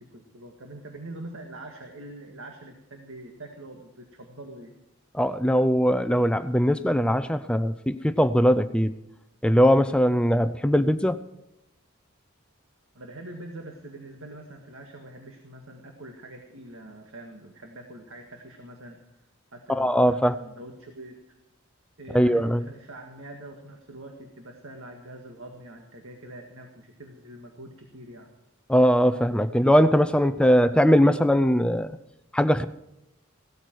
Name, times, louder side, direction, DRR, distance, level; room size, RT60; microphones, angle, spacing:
voice 1, 0.0-4.7 13.0-19.0 19.5-21.2 22.0-28.3, right 1 dB, 70° right, 3 dB, 1.9 m, -44 dB
voice 2, 5.1-8.9 9.4-11.2 19.8-20.3 22.1-22.6 28.7-31.9 32.3-32.7, equal, 5° left, 11 dB, 0.5 m, -20 dB
17.5 x 13.5 x 4.7 m, 0.87 s
head